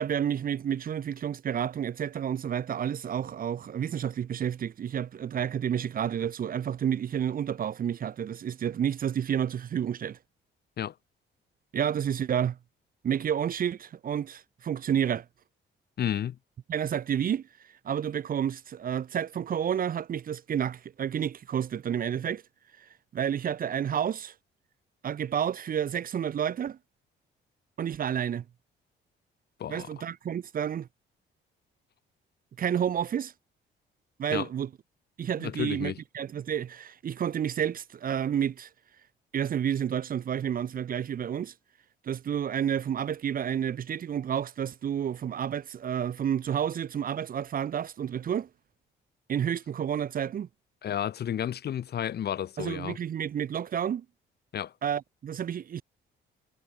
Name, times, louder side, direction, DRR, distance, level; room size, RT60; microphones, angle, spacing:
voice 1, 0.0-10.2 11.7-12.6 13.0-15.2 16.7-17.4 17.8-22.4 22.8-22.9 23.1-24.3 25.0-26.8 27.8-28.4 29.7-30.9 32.6-33.3 34.2-34.7 35.2-38.7 39.3-41.5 42.0-48.5 49.3-50.5 52.6-54.0 54.8-55.8, right 9 dB, 45° right, 0.6 m, -30 dB
voice 2, 16.0-16.4 29.6-29.9 34.3-34.5 35.4-36.0 50.8-53.0 54.5-54.7, left 10 dB, 55° left, 0.9 m, -32 dB
cardioid pair, 90°, 20 cm